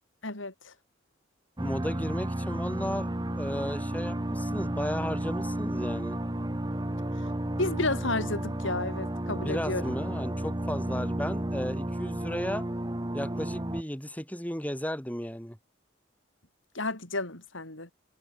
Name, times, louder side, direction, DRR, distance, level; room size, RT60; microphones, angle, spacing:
voice 1, 0.2-0.7 7.6-9.9 16.7-17.9, left 2 dB, 80° left, 5.6 m, -32 dB
voice 2, 1.6-3.1 3.4-6.2 9.4-12.6 13.1-15.6, equal, 10° left, 6.3 m, -34 dB
sound 1, 1.6-13.8, right 1 dB, 20° right, 1.1 m, -32 dB
head